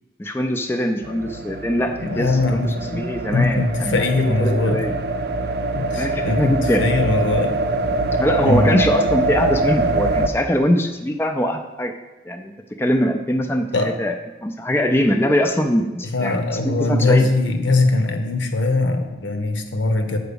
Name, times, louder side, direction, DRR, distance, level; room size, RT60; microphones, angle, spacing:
voice 1, 0.2-4.9 6.0-6.8 8.2-11.9 12.2-14.1 14.4-16.4 16.6-17.3, equal, 10° left, 5 dB, 0.4 m, -22 dB
sound 1, 1.0-10.3, right 2 dB, 55° right, 0.4 m, -24 dB
voice 2, 2.0-3.1 3.3-4.8 5.7-7.6 8.4-8.8 13.7-13.9 16.1-20.2, left 2 dB, 85° left, 6 dB, 0.9 m, -21 dB
6.8 x 4.6 x 6.8 m, 1.1 s
head